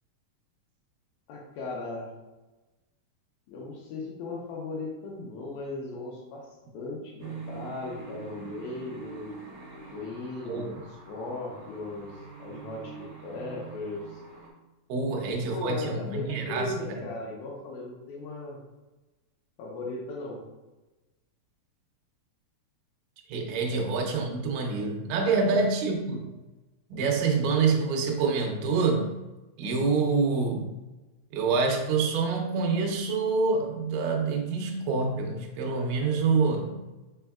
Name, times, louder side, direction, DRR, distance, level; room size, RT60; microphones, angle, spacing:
voice 1, 1.3-2.1 3.5-6.5 6.7-9.3 9.9-10.7 11.0-14.2 15.1-18.6 19.6-20.4 23.7-23.8 25.4-25.6, left 2 dB, 75° left, -2 dB, 2.4 m, -37 dB
sound 1, 7.2-14.5, right 5 dB, 65° right, 1.6 m, -44 dB
voice 2, 10.5-10.8 14.9-17.0 23.3-26.3 26.9-29.1 29.6-30.7 31.3-36.8, right 4 dB, 85° right, 1 dB, 1.9 m, -26 dB
5.2 x 4.5 x 2.3 m, 1.1 s
omnidirectional pair, 4.6 m